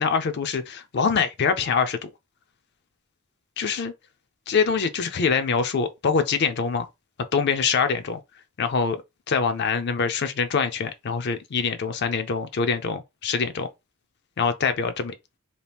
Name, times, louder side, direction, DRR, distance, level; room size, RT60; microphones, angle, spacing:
voice 1, 0.0-2.1 3.6-3.9 4.5-6.9 7.3-8.2 8.6-9.0 9.3-13.7 14.4-15.1, left 5 dB, 55° left, 0.4 m, -24 dB
2.8 x 2.5 x 3.3 m
head